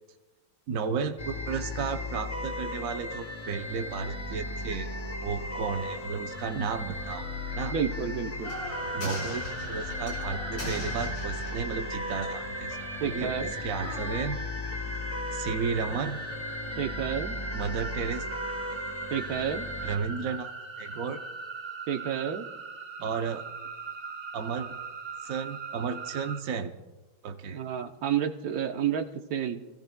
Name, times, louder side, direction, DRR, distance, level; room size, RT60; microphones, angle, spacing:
voice 1, 0.7-4.9 5.2-7.3 7.5-7.7 8.9-12.8 13.0-14.4 15.3-16.2 17.5-18.4 19.8-20.5 20.8-21.2 23.0-23.5 24.3-24.7 25.2-26.7 27.2-27.6, right 6 dB, 90° right, 6 dB, 0.7 m, -33 dB
sound 1, 1.2-20.0, left 2 dB, 35° left, 0.6 m, -36 dB
sound 2, 4.2-14.3, left 2 dB, 90° left, 4.6 m, -43 dB
voice 2, 7.7-8.6 13.0-13.5 16.8-17.4 19.1-19.6 21.9-22.4 27.5-29.6, right 8 dB, 60° right, 5 dB, 1.0 m, -30 dB
sound 3, 8.4-26.4, right 3 dB, 30° right, 0.8 m, -40 dB
28.5 x 16.0 x 2.2 m, 1.2 s
omnidirectional pair, 2.4 m